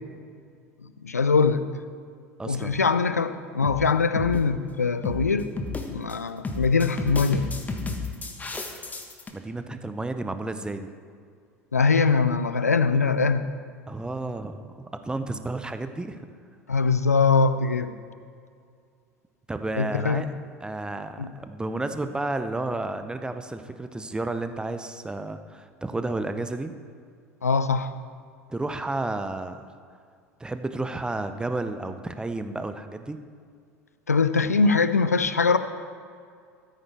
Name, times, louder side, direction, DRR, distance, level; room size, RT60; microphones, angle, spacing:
voice 1, 1.0-1.6 2.4-5.5 5.9-7.5 11.7-13.4 16.7-17.9 19.8-20.3 21.2-21.3 27.4-27.9 34.1-35.6, left 4 dB, 90° left, 12 dB, 0.4 m, -22 dB
voice 2, 2.4-2.8 9.3-10.9 13.9-16.2 19.5-20.3 20.6-26.7 28.5-29.7 30.4-33.2, right 2 dB, 10° right, 9 dB, 0.7 m, -32 dB
sound 1, 2.9-3.0 3.6-3.9 4.2-4.4 5.0-5.3 5.6-6.2 6.4-9.3, left 3 dB, 20° left, 1.2 m, -32 dB
13.5 x 9.0 x 3.5 m, 2.2 s
figure-of-eight pair, 75°, 8 cm